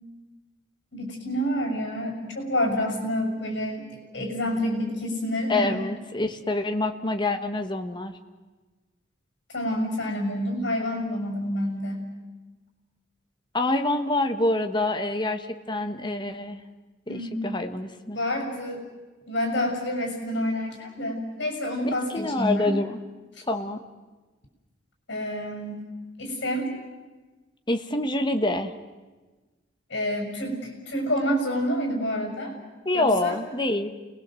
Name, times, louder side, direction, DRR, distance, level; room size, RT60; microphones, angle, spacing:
voice 1, 0.9-5.8 9.5-12.0 17.1-17.5 18.1-18.8 19.3-22.7 25.1-25.8 26.2-26.7 29.9-32.5 32.9-33.4, equal, 60° left, 2 dB, 6.9 m, -28 dB
voice 2, 5.5-8.1 13.5-16.6 17.1-18.2 22.1-23.0 23.5-23.8 27.7-28.7 32.8-33.9, left 2 dB, 25° left, 7 dB, 1.4 m, -26 dB
29.5 x 20.5 x 7.8 m, 1.3 s
head